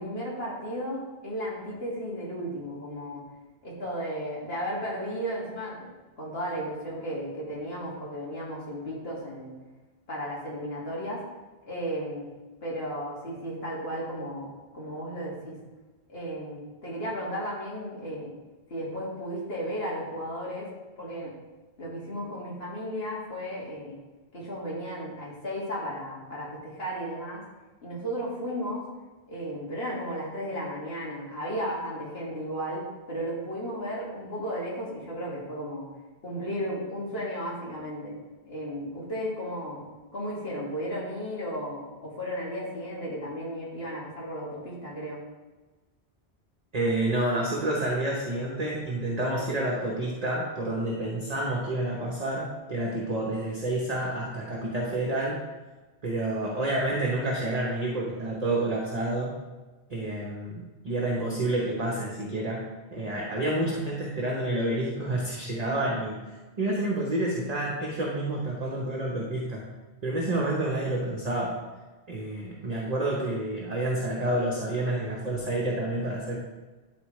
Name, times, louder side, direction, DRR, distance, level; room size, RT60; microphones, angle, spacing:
voice 1, 0.0-3.2 3.6-5.8 6.2-9.5 10.1-11.2 11.7-12.3 12.6-15.5 16.1-18.3 18.7-20.7 21.0-21.3 21.8-24.0 24.3-27.4 27.8-28.9 29.3-35.9 36.2-38.1 38.5-39.8 40.1-45.2, equal, 65° left, -5 dB, 2.3 m, -34 dB
voice 2, 46.7-55.4 56.0-59.3 59.9-62.6 62.9-66.2 66.6-69.6 70.0-71.5 72.1-76.4, right 1 dB, 40° right, -3 dB, 1.1 m, -29 dB
11.5 x 4.2 x 3.2 m, 1.2 s
omnidirectional pair, 1.1 m